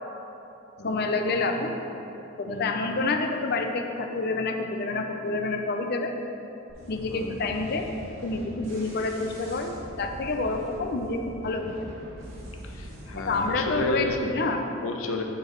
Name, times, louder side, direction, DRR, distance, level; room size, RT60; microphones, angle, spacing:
voice 1, 0.8-1.7 2.4-6.1 6.9-7.9 8.2-9.7 10.0-11.7 13.2-14.6, left 3 dB, 50° left, 4 dB, 0.6 m, -28 dB
sound 1, 6.7-14.3, equal, 80° right, 1.9 m, -43 dB
voice 2, 7.1-7.5 12.6-14.2 14.8-15.2, left 2 dB, 85° left, 3 dB, 0.8 m, -32 dB
9.2 x 4.9 x 4.6 m, 2.9 s
head